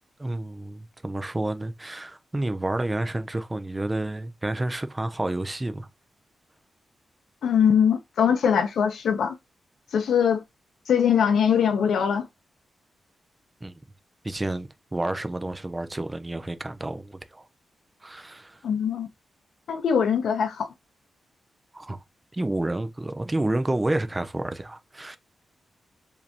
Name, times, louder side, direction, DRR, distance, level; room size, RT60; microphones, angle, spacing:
voice 1, 0.2-5.9 13.6-13.7 14.2-17.5 18.0-18.6 21.7-22.0 22.3-25.2, right 2 dB, 15° right, 0.4 m, -30 dB
voice 2, 7.4-9.4 9.9-10.4 10.9-12.3 18.6-19.1 19.7-20.7, left 7 dB, 85° left, 0.6 m, -22 dB
4.8 x 3.3 x 2.8 m
wide cardioid pair, 180°, 0 cm